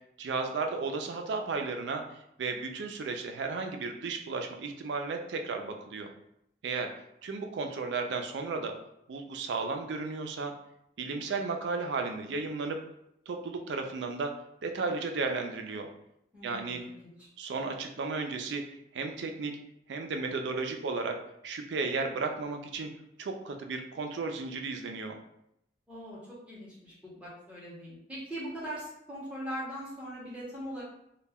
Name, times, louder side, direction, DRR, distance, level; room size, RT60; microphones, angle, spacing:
voice 1, 0.2-2.0 2.4-6.1 6.6-6.9 7.2-8.7 9.1-10.5 11.0-12.8 13.3-14.3 14.6-15.9 16.4-16.8 17.4-18.6 18.9-19.5 19.9-21.2 21.4-22.9 23.2-25.2, right 4 dB, 90° right, 4 dB, 0.4 m, -34 dB
voice 2, 16.3-17.3 25.9-30.8, equal, 5° right, -7 dB, 0.8 m, -41 dB
2.2 x 2.1 x 3.4 m, 0.77 s
head